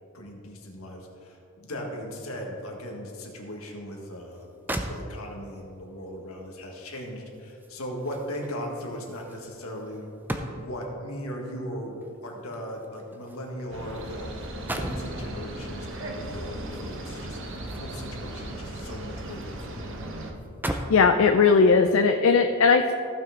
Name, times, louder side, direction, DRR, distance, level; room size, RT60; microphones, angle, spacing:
voice 1, 0.1-10.1 10.6-17.4 17.7-19.8, equal, 85° left, 0 dB, 1.6 m, -38 dB
sound 1, 4.3-4.4 4.7-5.5 6.9-10.9 12.0-14.1 14.4-15.2 16.6-18.2 18.6-19.6 19.9-20.0 20.4-21.1 21.8-22.0, right 1 dB, 10° right, 0.5 m, -37 dB
sound 2, 13.7-20.3, right 1 dB, 60° right, 1.0 m, -37 dB
voice 2, 20.7-22.9, left 5 dB, 65° left, 6 dB, 0.4 m, -19 dB
15.0 x 5.8 x 3.8 m, 2.7 s
head